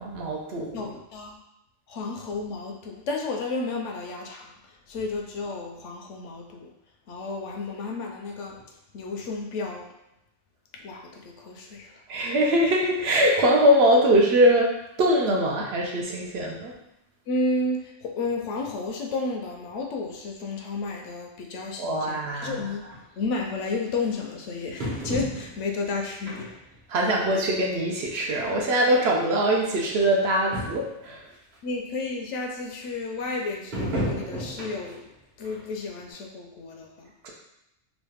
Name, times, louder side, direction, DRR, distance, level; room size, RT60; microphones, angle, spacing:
voice 1, 0.0-0.9 12.1-14.7 15.0-16.7 21.8-22.6 26.9-31.2 37.2-37.3, equal, 65° right, -1 dB, 0.7 m, -22 dB
voice 2, 0.7-1.4 1.9-4.5 4.9-6.7 7.1-8.6 8.9-9.9 10.7-12.0 17.3-22.9 23.2-26.5 31.6-35.1 35.4-37.1, left 3 dB, 75° left, 2 dB, 0.9 m, -32 dB
sound 1, 22.9-23.0 23.9-24.0 24.8-25.7 26.3-26.8 27.2-27.3 28.2-28.3 28.5-28.6 29.5-29.6 29.9-30.0 30.2-30.3 30.5-31.0 31.5-31.6 33.7-35.0 35.4-35.6 36.1-36.2, equal, 40° right, 1.0 m, -32 dB
3.1 x 2.3 x 3.3 m, 0.88 s
omnidirectional pair, 1.3 m